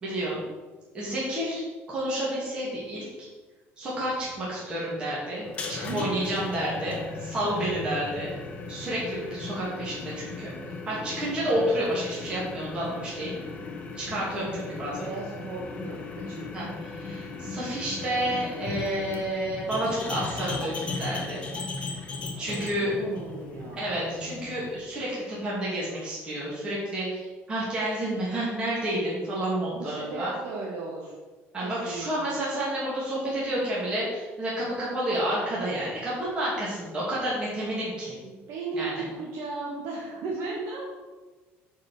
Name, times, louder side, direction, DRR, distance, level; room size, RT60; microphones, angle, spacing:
voice 1, 0.0-0.4 0.9-3.1 3.8-8.3 8.7-13.4 13.9-15.1 16.5-21.4 22.4-22.9 23.7-30.3 31.5-38.2 38.8-39.1, right 1 dB, 20° right, -7 dB, 2.4 m, -30 dB
sound 1, 5.4-24.8, left 3 dB, 25° left, 1.0 m, -37 dB
voice 2, 5.8-6.2 15.0-16.5 22.5-23.9 29.7-31.1 31.6-32.4 38.2-40.8, right 3 dB, 55° right, -3 dB, 1.6 m, -36 dB
9.4 x 4.8 x 6.4 m, 1.3 s
cardioid pair, 180°, 5 cm